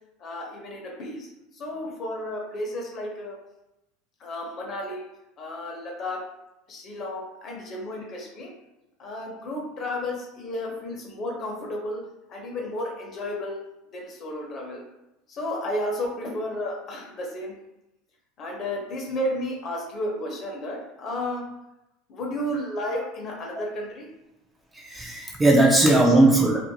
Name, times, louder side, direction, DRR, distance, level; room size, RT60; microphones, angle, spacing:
voice 1, 0.2-1.3 1.5-3.3 4.2-5.0 5.4-6.2 6.7-8.5 9.0-12.0 12.3-13.6 13.9-14.8 15.3-17.5 18.4-21.4 22.1-24.1 26.0-26.1, left 1 dB, 40° left, -1 dB, 0.8 m, -32 dB
voice 2, 24.7-26.6, right 2 dB, 10° right, -2 dB, 0.4 m, -18 dB
2.5 x 2.1 x 2.7 m, 0.92 s
supercardioid pair, 120°, 0 cm